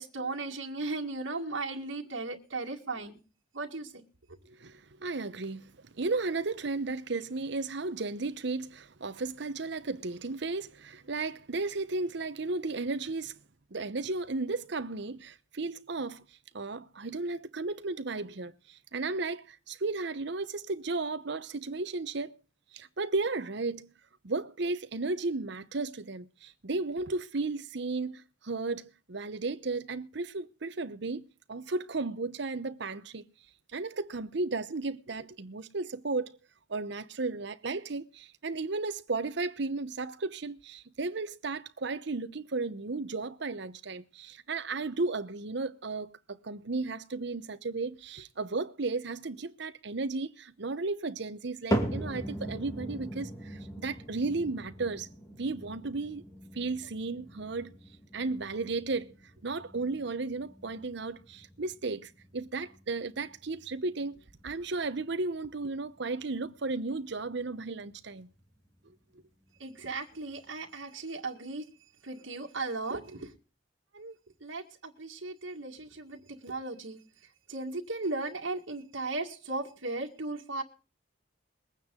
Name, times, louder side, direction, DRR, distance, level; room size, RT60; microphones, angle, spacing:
voice 1, 0.0-3.2 3.5-3.9 69.6-71.7 72.0-73.3 73.9-74.1 74.4-77.0 77.5-80.6, right 3 dB, 80° right, 1.9 m, -36 dB
voice 2, 4.5-13.3 13.7-16.2 16.5-22.4 22.7-23.9 24.2-33.2 33.7-36.4 36.7-55.1 55.3-56.2 56.5-57.7 58.1-59.1 59.4-64.2 64.4-68.3, right 3 dB, 65° right, 0.9 m, -34 dB
sound 1, 51.7-68.0 68.4-68.9 69.5-69.6 70.4-70.5, right 1 dB, 20° left, 2.5 m, -40 dB
22.0 x 9.3 x 3.8 m
head